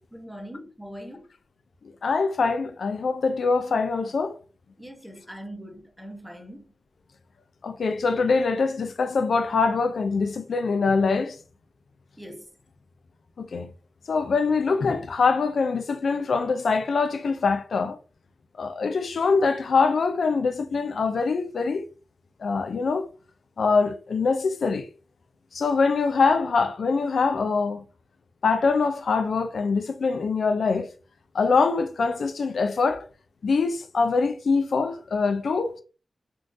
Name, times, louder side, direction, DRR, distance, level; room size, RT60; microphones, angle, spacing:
voice 1, 0.1-1.3 4.8-6.7 12.2-12.5, equal, 5° right, 0.7 m, -41 dB
voice 2, 2.0-4.4 7.6-11.4 13.4-13.7 14.1-18.0 18.6-21.9 22.4-23.1 23.6-24.9 25.5-27.8 28.4-30.9 31.3-33.0 33.4-35.8, left 4 dB, 75° left, 0.3 m, -24 dB
3.7 x 2.4 x 2.5 m
wide cardioid pair, 140°, 0 cm